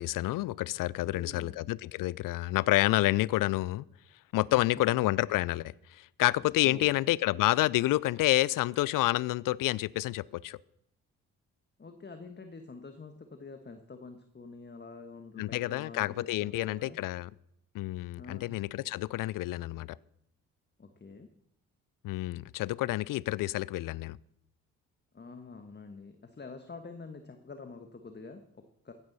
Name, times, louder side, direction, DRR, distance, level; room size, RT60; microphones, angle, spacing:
voice 1, 0.0-3.9 4.3-10.6 15.4-17.3 17.7-20.0 22.0-24.2, left 17 dB, 50° left, 24 dB, 0.5 m, -29 dB
voice 2, 1.0-1.7 4.5-4.6 4.9-5.0 6.4-7.0 11.8-17.0 18.2-18.6 20.8-21.3 25.1-28.9, left 4 dB, 25° left, 7 dB, 1.5 m, -47 dB
15.5 x 12.5 x 4.1 m, 0.77 s
hypercardioid pair, 45°, 42 cm